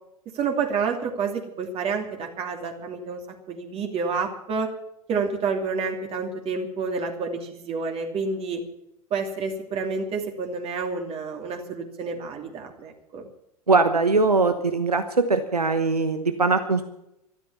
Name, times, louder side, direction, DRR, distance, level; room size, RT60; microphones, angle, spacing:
voice 1, 0.3-3.2 3.5-4.7 5.1-8.6 9.1-13.3, right 5 dB, 30° right, 3 dB, 2.7 m, -29 dB
voice 2, 13.7-16.8, right 3 dB, 85° right, 9 dB, 1.1 m, -21 dB
13.5 x 12.5 x 7.1 m, 0.83 s
figure-of-eight pair, 95°, 19 cm